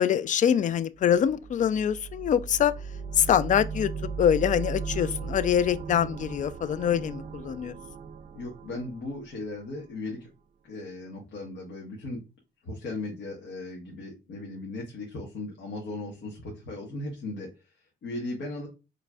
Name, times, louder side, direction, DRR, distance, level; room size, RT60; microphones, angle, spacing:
voice 1, 0.0-2.7 3.2-3.9 4.2-7.8, left 9 dB, 40° left, 0.4 m, -24 dB
sound 1, 1.1-9.9, right 5 dB, 40° right, 0.4 m, -37 dB
voice 2, 8.3-10.3 10.6-12.2 12.6-18.7, left 2 dB, 65° left, 1.4 m, -37 dB
4.8 x 3.2 x 2.3 m
cardioid pair, 90°, 20 cm